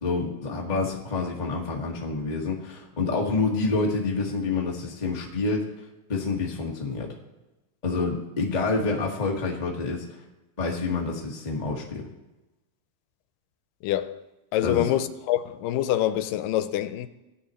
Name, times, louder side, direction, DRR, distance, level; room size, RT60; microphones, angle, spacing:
voice 1, 0.0-5.7 6.1-7.1 7.8-10.0 10.6-12.0 14.6-14.9, left 3 dB, 50° left, 0.4 m, -27 dB
voice 2, 13.8-14.2 14.5-17.1, left 12 dB, 85° left, 2.2 m, -26 dB
16.5 x 9.9 x 3.1 m
omnidirectional pair, 3.8 m